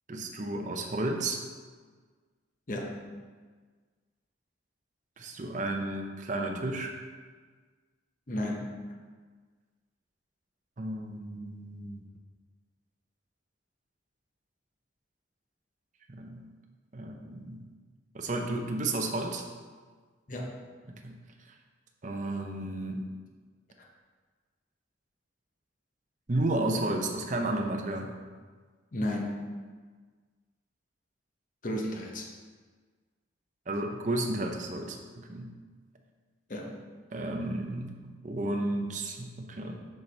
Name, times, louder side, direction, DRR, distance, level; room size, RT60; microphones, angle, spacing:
voice 1, 0.1-1.4 5.2-6.9 10.8-12.0 16.1-16.5 16.9-17.7 18.1-19.4 20.9-21.2 22.0-23.1 26.3-28.2 33.7-35.5 37.1-39.9, right 2 dB, 40° right, 3 dB, 0.6 m, -32 dB
voice 2, 2.7-3.1 8.3-8.7 20.3-20.5 28.9-29.3 31.6-32.3 36.5-36.7, left 1 dB, 45° left, 0 dB, 0.8 m, -33 dB
6.5 x 5.8 x 3.3 m, 1.5 s
head